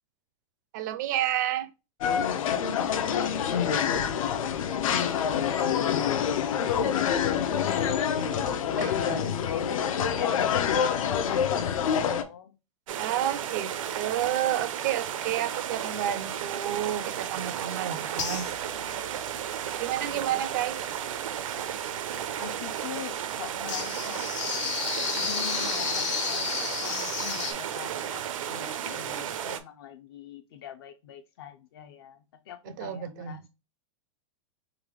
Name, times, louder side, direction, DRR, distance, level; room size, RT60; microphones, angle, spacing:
voice 1, 0.7-1.7 8.8-9.2 13.0-18.5 19.8-20.8 32.7-33.4, right 11 dB, 35° right, 0.4 m, -30 dB
sound 1, 2.0-12.2, left 8 dB, 80° left, 0.7 m, -26 dB
voice 2, 2.8-8.3 8.7-12.5 19.7-20.4 22.4-24.3 25.1-33.5, left 8 dB, 45° left, 0.4 m, -43 dB
sound 2, 12.9-29.6, right 9 dB, 75° right, 0.6 m, -34 dB
sound 3, 17.7-17.8 18.2-18.9 23.7-27.5, left 6 dB, 60° left, 1.3 m, -31 dB
3.9 x 2.9 x 3.1 m
supercardioid pair, 180°, 17 cm